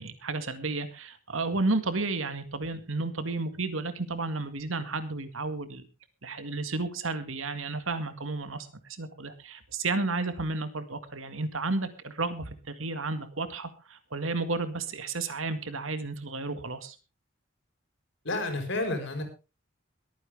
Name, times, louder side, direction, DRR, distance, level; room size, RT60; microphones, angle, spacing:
voice 1, 0.0-5.9 6.2-8.7 9.0-17.0, right 3 dB, 80° right, 10 dB, 2.0 m, -32 dB
voice 2, 18.2-19.2, left 2 dB, 65° left, 6 dB, 4.7 m, -30 dB
22.5 x 9.3 x 3.5 m, 0.30 s
head